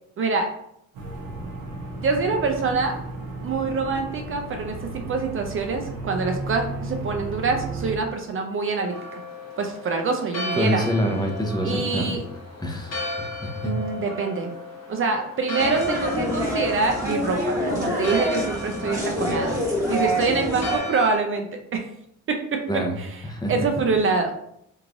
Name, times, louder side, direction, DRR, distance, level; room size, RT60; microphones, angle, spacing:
voice 1, 0.2-0.5 2.0-3.0 3.4-9.2 9.6-10.8 11.6-12.2 13.6-14.5 14.9-19.6 19.9-21.5 21.7-21.9 22.3-22.6 23.0-23.1 23.5-24.3, right 4 dB, 45° right, 3 dB, 0.5 m, -25 dB
sound 1, 0.9-8.0, right 2 dB, 80° right, 0.8 m, -34 dB
Church bell, 8.8-21.2, left 2 dB, 60° left, 1.1 m, -36 dB
voice 2, 10.5-12.2 12.6-13.7 22.7-23.0 23.2-23.5, equal, 15° left, 0 dB, 0.7 m, -26 dB
sound 2, 15.6-20.8, equal, 10° right, 1.5 m, -26 dB
3.5 x 3.1 x 2.5 m, 0.73 s
cardioid pair, 90°, 30 cm